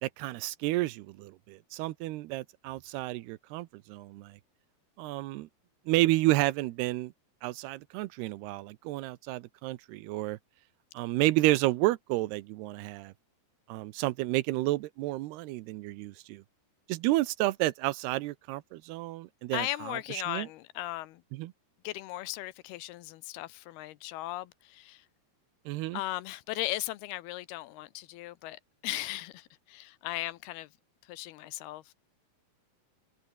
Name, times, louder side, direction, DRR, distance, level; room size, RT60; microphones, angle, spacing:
voice 1, 0.0-4.4 5.0-5.5 5.9-7.1 7.4-10.4 10.9-13.1 13.7-16.4 16.9-20.5 21.3-21.5 25.7-26.0, right 18 dB, 85° right, 2.8 m, -31 dB
voice 2, 19.5-21.2 21.8-25.1 25.9-30.7 31.0-31.9, left 16 dB, 75° left, 2.7 m, -37 dB
omnidirectional pair, 4.7 m